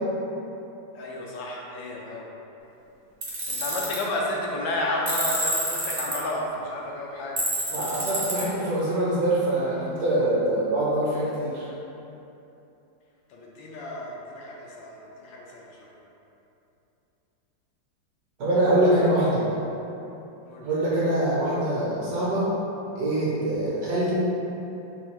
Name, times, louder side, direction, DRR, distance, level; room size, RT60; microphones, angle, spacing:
voice 1, 0.9-2.2 3.5-7.4 13.3-15.9 20.5-20.7, left 1 dB, 80° left, -2 dB, 1.4 m, -32 dB
Tools, 3.2-4.0 5.1-6.2 7.4-8.4, right 1 dB, 40° right, 0.6 m, -27 dB
voice 2, 7.7-11.7 18.4-19.5 20.6-22.5 23.0-24.1, right 1 dB, 65° right, -7 dB, 1.1 m, -24 dB
3.5 x 2.3 x 4.3 m, 2.9 s
omnidirectional pair, 2.0 m